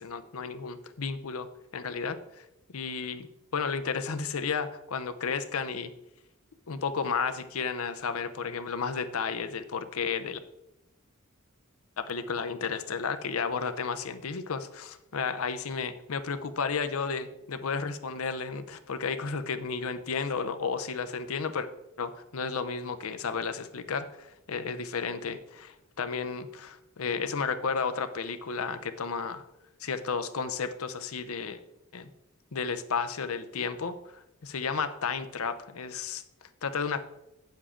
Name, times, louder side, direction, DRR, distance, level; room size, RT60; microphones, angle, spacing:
voice 1, 0.0-1.5 1.7-3.3 3.5-5.9 6.7-10.4 12.0-21.7 22.0-29.4 29.8-31.6 31.9-32.1 32.5-36.2 36.6-37.0, left 5 dB, 70° left, 10 dB, 0.7 m, -33 dB
8.5 x 7.3 x 3.7 m, 0.89 s
head